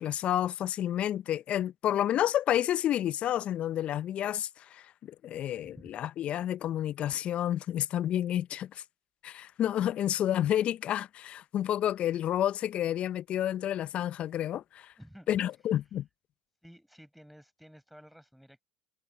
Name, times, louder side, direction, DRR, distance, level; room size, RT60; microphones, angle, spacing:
voice 1, 0.0-8.8 9.2-14.9 15.3-16.1, left 11 dB, 45° left, 0.6 m, -30 dB
voice 2, 15.0-15.4 16.6-18.6, equal, ahead, 8.0 m, -53 dB
hypercardioid pair, 75°, 3 cm